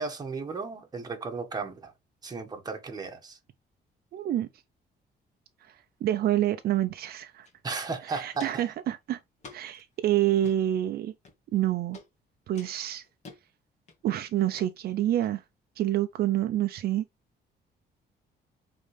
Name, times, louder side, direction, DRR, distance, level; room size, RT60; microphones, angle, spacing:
voice 1, 0.0-1.9 2.2-3.4 7.6-8.7, right 4 dB, 20° right, 1.7 m, -35 dB
voice 2, 4.1-4.5 6.0-7.5 8.1-9.2 9.5-11.1 11.5-12.0 12.5-13.0 14.0-15.4 15.8-17.0, right 12 dB, 65° right, 0.7 m, -27 dB
Walk footsteps, 7.4-7.5 7.8-8.7 9.4-9.8 10.3-10.6 11.2-11.6 11.9-12.1 12.6-13.4 13.9-14.2 14.5-14.7 15.2-15.3, left 4 dB, 40° left, 2.2 m, -49 dB
9.1 x 3.9 x 3.5 m
cardioid pair, 165°, 17 cm